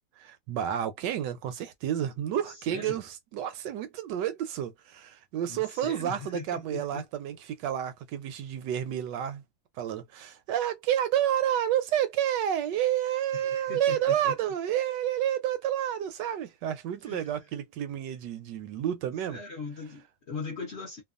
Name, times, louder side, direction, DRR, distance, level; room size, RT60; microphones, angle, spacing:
voice 1, 0.2-9.4 9.8-19.4, right 10 dB, 75° right, 1.1 m, -30 dB
voice 2, 2.4-3.0 5.5-7.1 13.3-14.3 17.0-17.3 19.3-21.0, left 4 dB, 55° left, 0.8 m, -40 dB
2.9 x 2.2 x 2.4 m
omnidirectional pair, 2.0 m